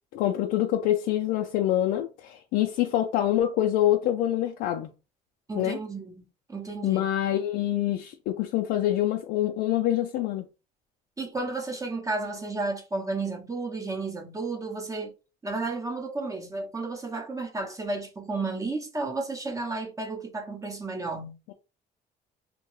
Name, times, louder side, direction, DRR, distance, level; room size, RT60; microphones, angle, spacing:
voice 1, 0.2-4.9 5.6-5.8 6.8-10.5 21.5-21.6, left 12 dB, 85° left, 0.4 m, -25 dB
voice 2, 5.5-7.0 11.2-15.1 15.4-21.3, right 3 dB, 20° right, 0.7 m, -32 dB
2.8 x 2.2 x 3.0 m
cardioid pair, 110°, 17 cm